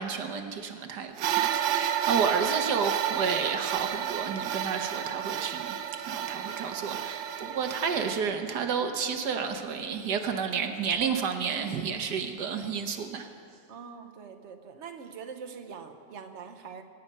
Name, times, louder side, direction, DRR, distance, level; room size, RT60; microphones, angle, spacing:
voice 1, 0.0-5.8 6.1-13.3, right 6 dB, 65° right, 6 dB, 1.4 m, -31 dB
sound 1, 1.2-8.2, right 10 dB, 90° right, 1.4 m, -31 dB
voice 2, 6.3-7.2 13.7-16.8, right 6 dB, 45° right, 6 dB, 1.1 m, -44 dB
24.0 x 9.5 x 5.4 m, 2.3 s
omnidirectional pair, 2.0 m